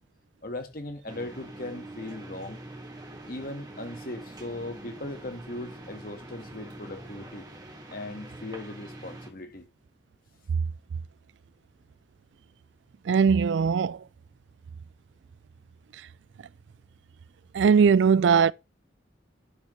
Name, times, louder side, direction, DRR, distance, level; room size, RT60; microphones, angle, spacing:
voice 1, 0.4-2.6 3.3-7.5 7.9-9.7, left 1 dB, 50° left, 1.7 m, -38 dB
sound 1, 1.1-9.3, right 1 dB, 20° right, 1.9 m, -44 dB
voice 2, 13.1-14.0 17.5-18.5, right 6 dB, 70° right, 0.3 m, -20 dB
11.5 x 6.3 x 3.2 m
head